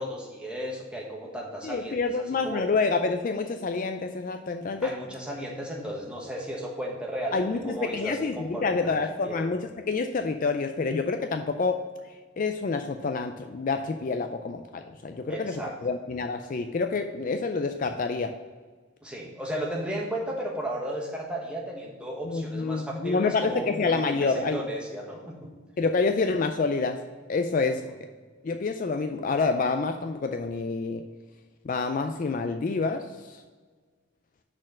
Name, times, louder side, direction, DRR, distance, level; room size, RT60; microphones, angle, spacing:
voice 1, 0.0-2.0 2.4-2.7 4.8-9.0 9.2-9.5 15.3-15.7 19.0-25.6, right 1 dB, 5° right, -2 dB, 1.2 m, -34 dB
voice 2, 1.6-4.9 7.3-11.8 12.4-18.3 22.2-24.6 25.8-27.0 27.3-27.8 28.4-31.0 31.6-33.4, left 4 dB, 40° left, 6 dB, 0.3 m, -28 dB
6.2 x 4.3 x 6.3 m, 1.5 s
head